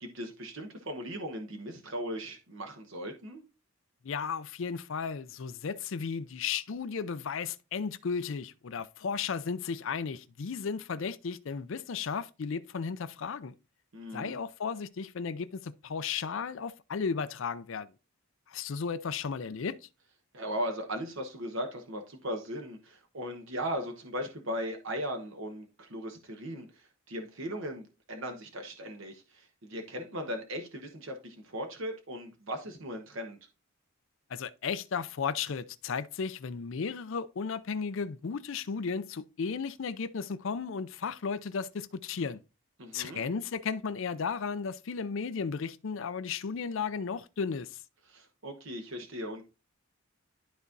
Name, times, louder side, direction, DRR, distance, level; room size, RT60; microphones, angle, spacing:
voice 1, 0.0-3.4 13.9-14.4 20.3-33.4 42.8-43.2 48.1-49.4, equal, 60° right, 1.1 m, -38 dB
voice 2, 4.0-13.5 14.1-17.9 18.5-19.8 34.3-42.4 42.9-47.8, left 5 dB, 60° left, 0.4 m, -34 dB
12.0 x 4.1 x 2.6 m
head